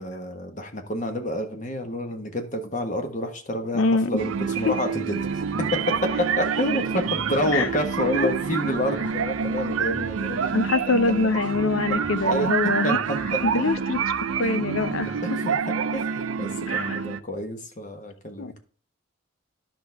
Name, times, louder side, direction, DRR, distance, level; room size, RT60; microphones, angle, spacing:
voice 1, 0.0-10.5 12.2-12.5 12.8-13.2 15.2-15.6 15.9-18.6, equal, 40° left, 1.4 m, -29 dB
voice 2, 3.7-4.1 4.7-4.8 7.5-7.7 8.2-8.3 10.5-13.0 13.5-14.1 14.4-15.2 16.7-17.0 18.4-18.6, left 3 dB, 75° left, 0.7 m, -24 dB
sound 1, 4.1-15.2, equal, 5° left, 3.7 m, -44 dB
sound 2, 4.2-17.2, right 6 dB, 80° right, 0.5 m, -27 dB
10.5 x 6.0 x 3.5 m
head